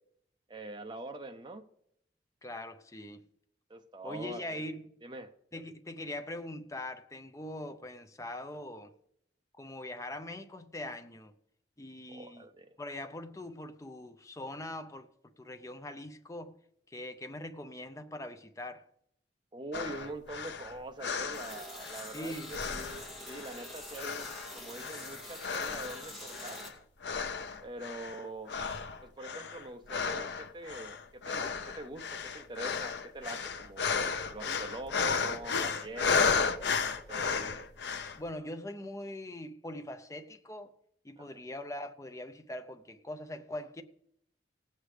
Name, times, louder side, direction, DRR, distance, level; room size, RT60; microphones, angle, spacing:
voice 1, 0.5-1.6 3.7-4.7 5.0-5.3 12.1-12.7 19.5-24.3 24.5-26.6 27.6-28.5 29.0-37.3 41.2-41.3, right 2 dB, 25° right, 0.7 m, -44 dB
voice 2, 2.4-3.2 4.0-4.9 5.5-8.9 9.6-11.3 11.8-12.5 12.8-15.1 15.4-16.6 16.9-18.9 22.1-22.6 38.1-40.7 41.0-43.8, left 1 dB, 15° left, 0.5 m, -42 dB
sound 1, 19.7-22.2 22.5-23.6 24.0-26.0 26.3-26.7 27.0-28.2 28.5-38.2, left 5 dB, 70° left, 0.6 m, -34 dB
sound 2, 21.3-26.7, left 1 dB, ahead, 2.4 m, -46 dB
18.0 x 7.9 x 3.3 m
head